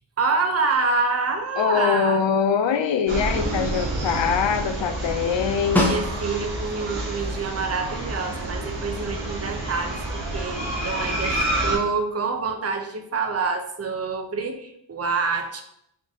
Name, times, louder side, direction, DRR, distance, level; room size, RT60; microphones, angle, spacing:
voice 1, 0.2-2.2 5.9-10.6 10.8-15.6, right 4 dB, 30° right, 4 dB, 0.6 m, -27 dB
voice 2, 1.6-5.9, left 7 dB, 70° left, 8 dB, 0.5 m, -23 dB
sound 1, 3.1-11.8, right 1 dB, 70° right, 1.1 m, -28 dB
Snare drum, 5.8-6.7 11.1-11.2, left 1 dB, 5° left, 0.8 m, -24 dB
3.8 x 2.6 x 3.6 m, 0.75 s
cardioid pair, 55°, 47 cm